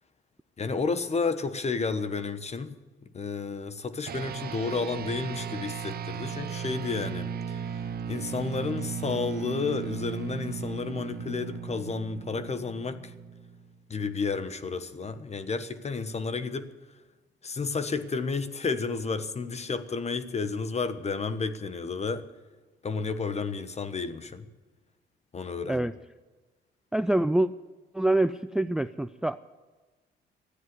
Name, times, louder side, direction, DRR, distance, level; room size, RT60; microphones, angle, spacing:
voice 1, 0.6-2.7 3.1-7.8 8.1-13.1 13.9-16.7 17.4-22.2 22.8-24.5 25.3-25.9, left 4 dB, 35° left, 1.2 m, -31 dB
sound 1, 4.1-13.8, right 7 dB, 50° right, 0.9 m, -36 dB
voice 2, 26.9-27.5 27.9-29.4, right 1 dB, 5° right, 0.4 m, -25 dB
13.5 x 9.8 x 9.5 m
cardioid pair, 90°, 20 cm